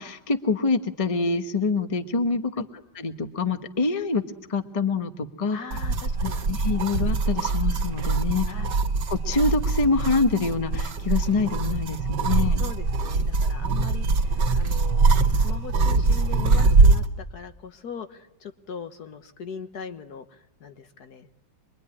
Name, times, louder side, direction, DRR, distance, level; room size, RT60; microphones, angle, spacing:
voice 1, 0.0-2.6 2.9-4.2 4.5-5.6 6.2-8.5 9.1-12.6, left 4 dB, 20° left, 8 dB, 1.2 m, -25 dB
voice 2, 5.5-6.4 8.5-8.7 12.5-15.2 15.4-21.3, left 6 dB, 60° left, 9 dB, 1.7 m, -40 dB
sound 1, 5.7-17.1, right 3 dB, 70° right, 2.3 m, -23 dB
26.0 x 22.5 x 9.9 m, 0.86 s
omnidirectional pair, 1.9 m